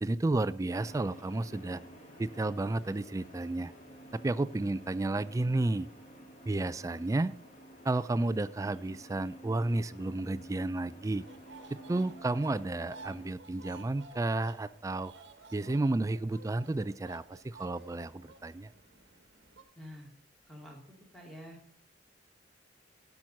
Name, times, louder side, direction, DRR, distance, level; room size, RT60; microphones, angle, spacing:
voice 1, 0.0-1.8 2.2-3.7 4.1-5.9 6.5-7.3 7.8-11.2 11.7-15.1 15.5-18.7, right 2 dB, 15° right, 16 dB, 0.3 m, -32 dB
sound 1, 0.7-13.3, right 1 dB, 40° left, 2.6 m, -52 dB
sound 2, 11.2-19.6, right 3 dB, 65° right, 1.2 m, -53 dB
voice 2, 19.8-20.1 20.5-20.8 21.1-21.8, equal, ahead, -2 dB, 2.7 m, -48 dB
11.0 x 6.0 x 5.3 m, 0.68 s
head